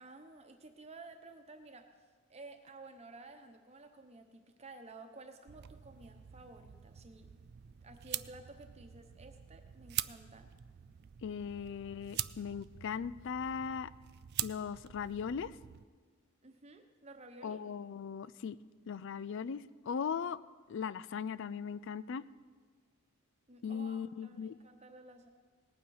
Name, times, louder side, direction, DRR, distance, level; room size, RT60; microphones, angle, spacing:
voice 1, 0.0-2.0 2.3-7.3 7.8-10.5 16.4-17.6 23.5-25.3, right 2 dB, 30° right, 6 dB, 1.0 m, -53 dB
sound 1, 5.5-15.8, right 14 dB, 45° right, 0.3 m, -44 dB
voice 2, 11.2-13.9 14.4-15.6 17.4-18.6 18.9-20.4 20.7-22.2 23.6-24.6, left 6 dB, 55° left, 17 dB, 0.3 m, -38 dB
19.0 x 8.9 x 4.8 m, 1.5 s
head